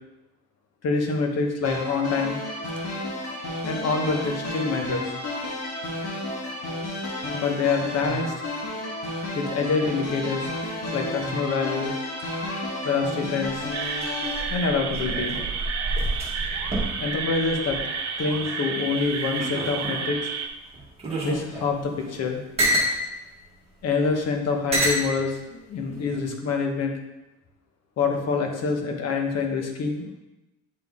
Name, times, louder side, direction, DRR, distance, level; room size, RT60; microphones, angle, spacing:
voice 1, 0.8-2.4 3.6-5.0 7.3-8.3 9.3-10.5 10.9-11.9 12.8-13.7 14.5-15.4 17.0-17.8 18.2-20.2 21.2-22.4 23.8-26.9 28.0-30.2, left 4 dB, 55° left, 3 dB, 1.1 m, -26 dB
sound 1, 1.6-14.4, left 1 dB, 80° left, 1.6 m, -32 dB
sound 2, 13.4-18.5 18.9-20.1 20.7-23.0 23.8-23.9 24.7-25.1 25.9-26.3, right 1 dB, 20° right, 1.6 m, -29 dB
sound 3, 13.7-20.5, right 5 dB, 60° right, 0.8 m, -31 dB
8.7 x 4.1 x 3.6 m, 0.98 s
cardioid pair, 155°, 30 cm